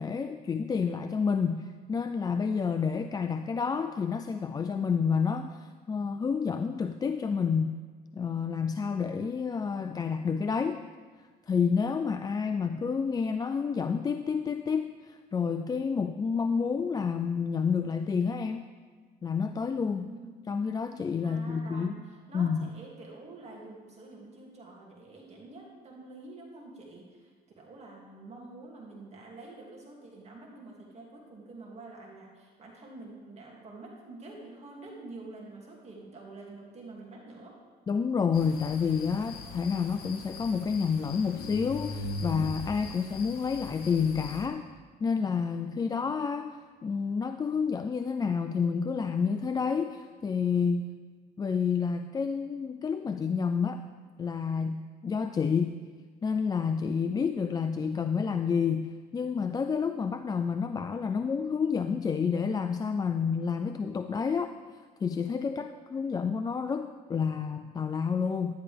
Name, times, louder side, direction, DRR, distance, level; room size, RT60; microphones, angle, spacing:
voice 1, 0.0-7.8 8.1-10.8 11.5-18.7 19.2-20.1 20.5-21.9 22.3-22.7 37.9-44.7 45.0-50.9 51.4-53.8 54.2-55.8 56.2-64.5 65.0-68.5, left 6 dB, 25° left, 8 dB, 0.3 m, -29 dB
voice 2, 20.0-20.4 21.2-37.5, right 2 dB, 40° right, -2 dB, 2.3 m, -47 dB
sound 1, 38.3-44.5, left 2 dB, 60° left, 1.4 m, -40 dB
11.0 x 10.5 x 3.4 m, 1.5 s
cardioid pair, 110°, 17 cm